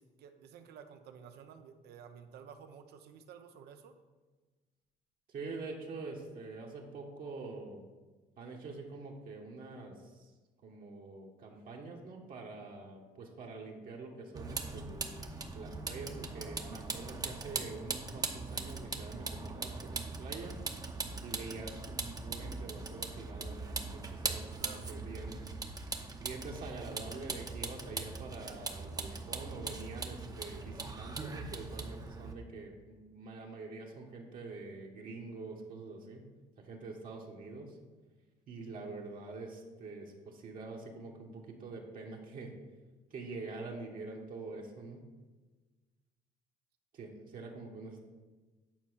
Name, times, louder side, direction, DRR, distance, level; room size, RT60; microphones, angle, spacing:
voice 1, 0.0-3.9 21.0-21.3 24.6-24.9, right 7 dB, 75° right, 7 dB, 0.9 m, -52 dB
voice 2, 5.3-7.8 8.4-10.3 10.6-15.1 15.5-20.6 21.2-25.5 26.2-36.3 36.6-37.8 38.5-42.5 43.1-45.0 46.9-48.0, right 3 dB, 55° right, -1 dB, 1.4 m, -45 dB
Vehicle, 14.3-32.3, right 3 dB, 20° right, 0.9 m, -40 dB
9.4 x 4.3 x 6.3 m, 1.3 s
cardioid pair, 110°, 17 cm